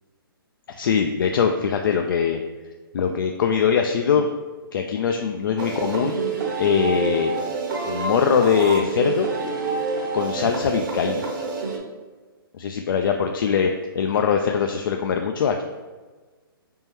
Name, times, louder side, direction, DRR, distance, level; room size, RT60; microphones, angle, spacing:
voice 1, 0.8-2.4 2.9-4.3 4.7-6.2 6.6-7.4 7.9-9.3 10.1-11.3 12.6-15.6, left 7 dB, 60° left, 4 dB, 0.4 m, -22 dB
sound 1, 5.6-11.8, right 4 dB, 55° right, 0.9 m, -27 dB
4.4 x 3.5 x 2.9 m, 1.3 s
hypercardioid pair, 140°, 13 cm